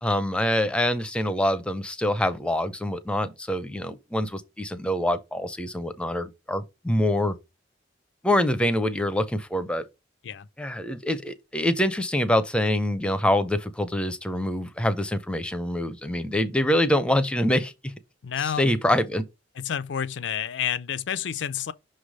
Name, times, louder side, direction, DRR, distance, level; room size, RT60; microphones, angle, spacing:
voice 1, 0.0-7.3 8.2-9.8 10.6-17.9 18.4-19.2, left 1 dB, 5° left, 0.5 m, -25 dB
voice 2, 18.2-18.7 19.6-21.7, left 8 dB, 65° left, 0.4 m, -29 dB
5.8 x 3.2 x 5.0 m
head